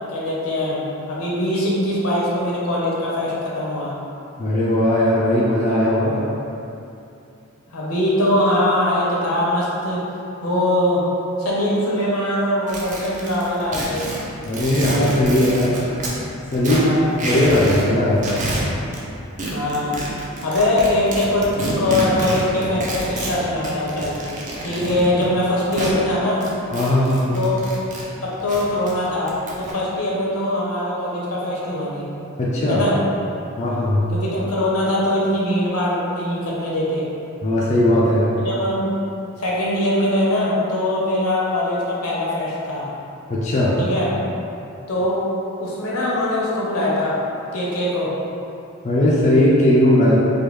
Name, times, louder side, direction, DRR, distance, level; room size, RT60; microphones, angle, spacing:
voice 1, 0.1-0.8 1.1-3.9 7.7-10.0 10.4-11.1 11.4-14.1 16.7-17.1 19.5-20.0 20.4-24.2 24.6-26.4 27.3-27.5 28.2-32.1 32.7-33.0 34.1-37.1 38.4-38.9 39.4-42.9 43.8-44.1 44.9-45.2 45.6-47.2 47.5-48.1, left 1 dB, 80° left, -6 dB, 0.7 m, -22 dB
voice 2, 4.4-6.2 14.5-15.8 16.5-16.9 17.2-18.4 26.7-27.4 32.4-32.8 33.6-34.1 37.4-38.3 43.3-43.8 48.8-50.2, left 1 dB, 35° left, -6 dB, 0.4 m, -18 dB
sound 1, 12.7-16.2 16.5-17.9 18.1-19.0 19.4-26.0 26.4-28.0 28.3-29.7, right 1 dB, 35° right, 0.5 m, -28 dB
3.4 x 2.2 x 3.1 m, 2.7 s
head